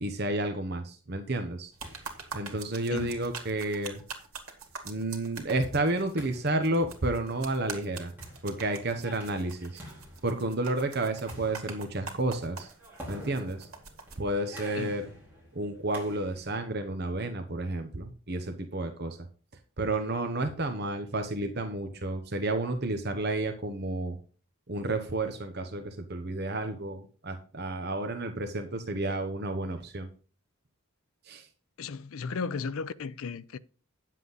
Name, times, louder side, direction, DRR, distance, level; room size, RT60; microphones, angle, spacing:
voice 1, 0.0-1.7 2.3-4.0 4.8-8.1 8.4-9.8 10.2-12.7 13.1-13.7 14.2-15.1 15.5-19.2 19.8-24.2 24.7-30.1 31.3-31.5, right 2 dB, 50° right, 1.0 m, -31 dB
sound 1, 1.4-16.6, equal, 10° right, 4.5 m, -50 dB
sound 2, 1.7-14.2, right 5 dB, 80° right, 2.1 m, -44 dB
voice 2, 31.8-33.6, left 5 dB, 75° left, 0.5 m, -35 dB
9.7 x 7.5 x 4.0 m
head